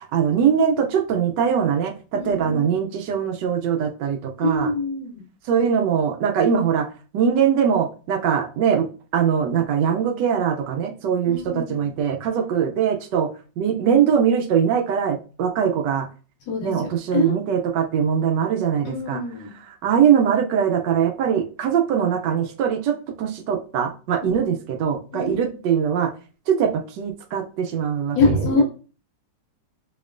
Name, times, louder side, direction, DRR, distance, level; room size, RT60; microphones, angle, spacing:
voice 1, 0.1-4.7 5.5-6.9 7.1-8.9 9.1-13.3 13.6-16.1 16.6-19.2 19.8-26.1 26.5-28.6, right 8 dB, 75° right, 5 dB, 1.2 m, -22 dB
voice 2, 2.1-2.8 4.4-5.2 11.3-11.9 16.5-16.7 17.1-17.3 18.8-19.5 24.2-24.5 25.1-25.5 28.1-28.6, left 3 dB, 75° left, -1 dB, 1.3 m, -24 dB
4.2 x 3.0 x 2.4 m, 0.36 s
omnidirectional pair, 2.0 m